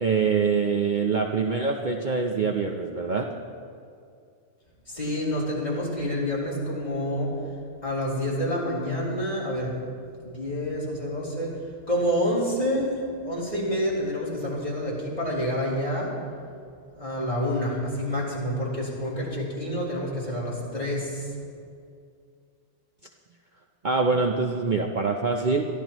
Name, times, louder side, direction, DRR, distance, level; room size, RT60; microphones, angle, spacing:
voice 1, 0.0-3.3 23.8-25.6, right 4 dB, 45° right, 1 dB, 0.8 m, -24 dB
voice 2, 4.9-7.4 7.8-11.5 11.8-16.5 17.0-21.3, equal, 35° left, -7 dB, 4.2 m, -28 dB
22.5 x 14.0 x 3.1 m, 2.3 s
omnidirectional pair, 1.3 m